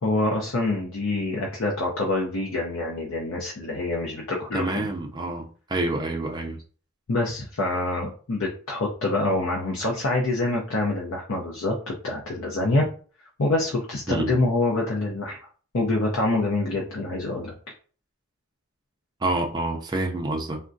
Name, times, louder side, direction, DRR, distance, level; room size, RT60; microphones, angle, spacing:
voice 1, 0.0-4.9 7.1-12.9 13.4-15.4 15.7-17.5, left 2 dB, 65° left, 0.6 m, -26 dB
voice 2, 4.5-6.6 14.1-14.4 19.2-20.6, right 2 dB, 20° right, 0.4 m, -27 dB
3.5 x 2.1 x 2.5 m
head